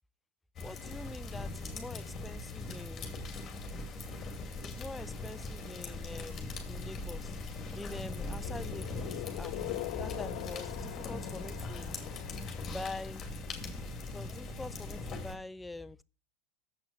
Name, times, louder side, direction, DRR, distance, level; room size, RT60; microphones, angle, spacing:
sound 1, 0.6-15.4, left 3 dB, 30° left, 2.5 m, -40 dB
voice 1, 0.6-3.2 4.6-7.4 7.7-9.6 10.0-12.0 12.6-13.2 14.1-16.0, left 2 dB, 10° left, 0.5 m, -45 dB
sound 2, 8.2-13.1, left 20 dB, 65° left, 0.4 m, -43 dB
7.6 x 6.1 x 7.0 m
hypercardioid pair, 100°, 0 cm